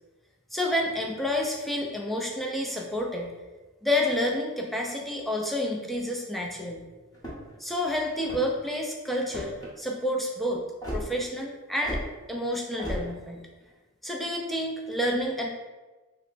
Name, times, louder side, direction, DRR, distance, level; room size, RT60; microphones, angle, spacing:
voice 1, 0.5-3.3 3.8-6.8 7.6-10.7 10.9-12.0 12.3-13.5 14.0-15.5, left 1 dB, ahead, -1 dB, 0.4 m, -29 dB
sound 1, 7.1-7.6 8.2-8.7 9.3-9.7 10.8-11.0 11.8-12.1 12.8-13.0, equal, 15° left, 0.8 m, -34 dB
3.3 x 2.1 x 3.9 m, 1.2 s
head